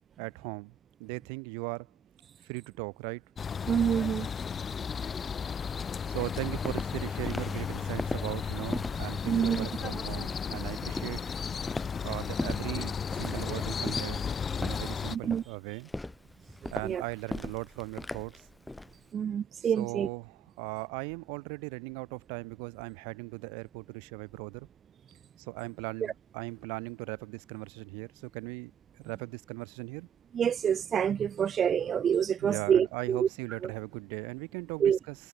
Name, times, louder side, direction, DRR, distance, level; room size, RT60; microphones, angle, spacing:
voice 1, 0.2-1.9 2.4-3.2 6.1-11.2 12.0-14.2 14.6-15.9 16.7-18.5 19.6-24.7 25.4-30.1 32.4-35.2, right 40 dB or more, 85° right, 7.6 m, -38 dB
sound 1, 3.4-15.2, left 6 dB, 25° left, 0.6 m, -34 dB
voice 2, 3.7-4.3 9.3-9.7 15.1-15.4 16.8-17.0 19.1-20.1 30.3-33.3 33.6-33.7 34.8-35.0, right 8 dB, 30° right, 0.6 m, -27 dB
Walk footsteps, 6.2-18.9, left 2 dB, 5° left, 4.6 m, -39 dB
cardioid pair, 150°, 0 cm